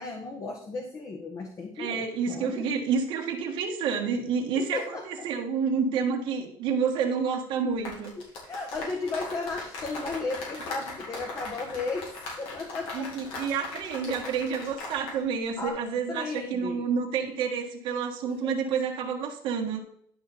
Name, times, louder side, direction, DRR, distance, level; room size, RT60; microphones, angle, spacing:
voice 1, 0.0-2.6 4.5-5.0 8.5-12.1 12.4-13.1 13.6-13.8 14.1-14.2 15.6-15.8 16.1-16.9 18.4-18.5, left 3 dB, 35° left, 3 dB, 1.3 m, -34 dB
voice 2, 1.8-8.1 12.9-19.8, right 6 dB, 70° right, 0 dB, 1.6 m, -29 dB
sound 1, 7.7-15.2 15.5-15.7, left 3 dB, 75° left, 3.7 m, -39 dB
11.0 x 5.1 x 4.2 m, 0.63 s
cardioid pair, 135°, 9 cm